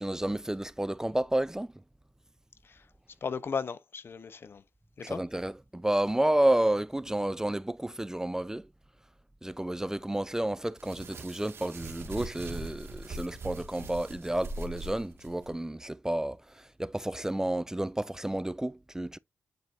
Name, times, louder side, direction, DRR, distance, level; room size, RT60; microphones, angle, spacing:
voice 1, 0.0-1.7 5.0-8.7 9.4-19.2, right 1 dB, 10° right, 0.4 m, -30 dB
voice 2, 3.2-4.6 5.0-5.2, left 6 dB, 60° left, 0.8 m, -36 dB
sound 1, 10.8-15.5, right 2 dB, 70° right, 2.1 m, -41 dB
9.5 x 4.5 x 2.6 m
cardioid pair, 50°, 4 cm